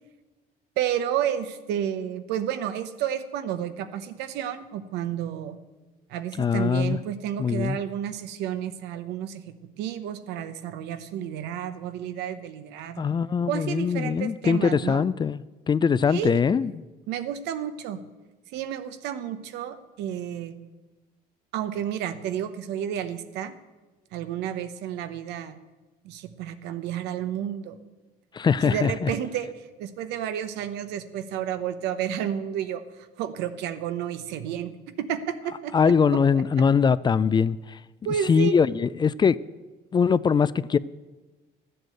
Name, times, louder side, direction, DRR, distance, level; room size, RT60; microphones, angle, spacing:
voice 1, 0.8-5.6 6.1-9.4 9.8-13.1 13.5-15.0 16.1-16.4 17.1-18.0 18.5-20.6 21.5-23.5 24.1-25.5 26.0-27.8 28.6-29.5 29.8-32.8 33.2-34.7 35.0-36.4 38.0-38.5, right 10 dB, 90° right, 0.9 m, -31 dB
voice 2, 6.4-7.0 7.4-7.8 13.0-16.7 28.3-29.1 35.7-37.8 38.3-39.4 39.9-40.8, left 6 dB, 25° left, 0.3 m, -22 dB
12.5 x 7.9 x 7.8 m
cardioid pair, 110°, 17 cm